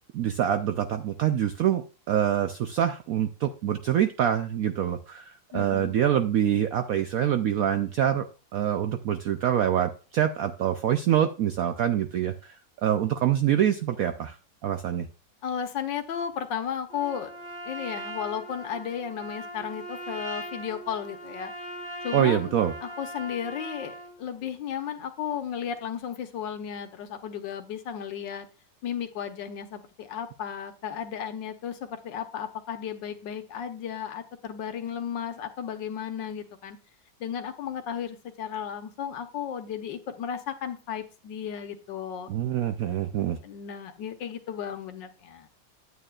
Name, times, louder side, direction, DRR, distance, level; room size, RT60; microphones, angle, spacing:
voice 1, 0.1-14.4 14.6-15.1 22.1-22.7 42.3-43.4, right 10 dB, 75° right, 8 dB, 0.8 m, -25 dB
voice 2, 5.5-6.0 15.4-17.3 17.6-21.5 22.0-22.5 22.8-28.5 28.8-36.8 37.2-42.3 43.4-45.5, left 8 dB, 75° left, 8 dB, 1.6 m, -34 dB
Trumpet, 16.9-24.1, equal, 40° right, 2.6 m, -39 dB
9.5 x 8.9 x 2.4 m, 0.35 s
omnidirectional pair, 2.0 m